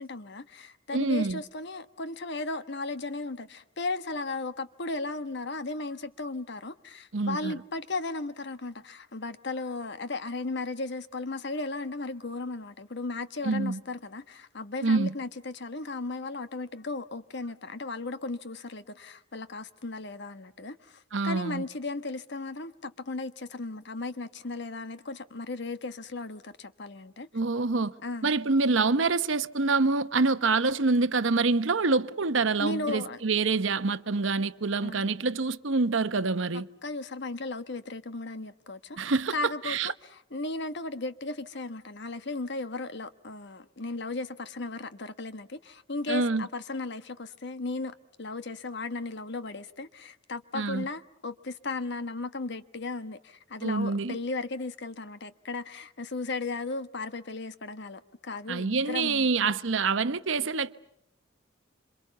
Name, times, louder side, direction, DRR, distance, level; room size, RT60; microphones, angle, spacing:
voice 1, 0.0-27.3 28.0-28.3 32.6-33.2 34.8-35.1 36.5-39.0 39.3-59.3, left 3 dB, 60° left, 1.2 m, -36 dB
voice 2, 0.9-1.4 7.1-7.5 13.4-13.8 14.8-15.1 21.1-21.6 27.3-27.9 28.2-36.7 39.0-39.3 39.7-39.9 46.1-46.5 50.5-50.9 53.6-54.2 58.5-60.8, right 3 dB, 70° right, 1.0 m, -26 dB
27.0 x 27.0 x 7.0 m
head